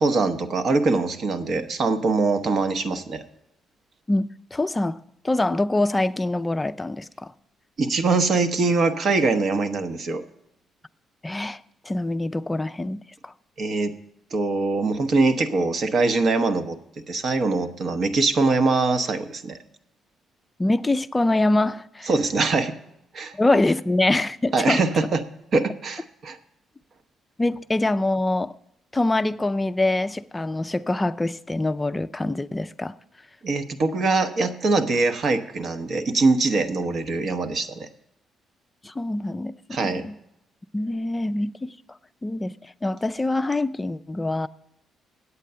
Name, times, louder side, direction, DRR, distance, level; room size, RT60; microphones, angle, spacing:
voice 1, 0.0-3.2 7.8-10.2 13.6-13.9 14.3-16.8 17.1-19.6 22.1-22.8 23.1-23.4 24.5-25.2 25.5-26.4 33.4-37.9 39.7-40.0, right 3 dB, 55° right, 0.9 m, -23 dB
voice 2, 4.1-5.0 5.2-7.3 11.2-13.3 20.6-22.1 23.3-24.8 27.4-28.5 28.9-33.0 38.8-40.1 40.7-41.8 42.2-44.5, left 2 dB, 15° left, 0.4 m, -24 dB
8.4 x 8.3 x 6.7 m
cardioid pair, 90°, 0 cm